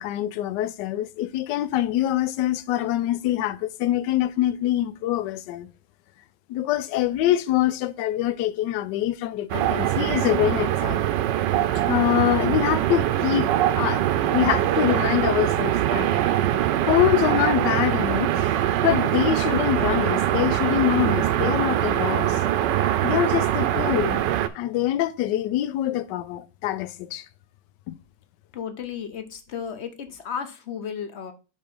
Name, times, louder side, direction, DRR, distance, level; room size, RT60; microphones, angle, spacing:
voice 1, 0.0-5.7 6.5-11.0 11.9-13.5 13.8-16.1 16.9-22.4 23.0-24.2 24.5-27.3 27.9-28.0, left 13 dB, 80° left, 1.2 m, -25 dB
sound 1, 9.5-24.5, right 12 dB, 80° right, 1.2 m, -23 dB
voice 2, 28.5-31.3, left 7 dB, 55° left, 0.8 m, -34 dB
5.4 x 4.3 x 5.2 m
omnidirectional pair, 1.9 m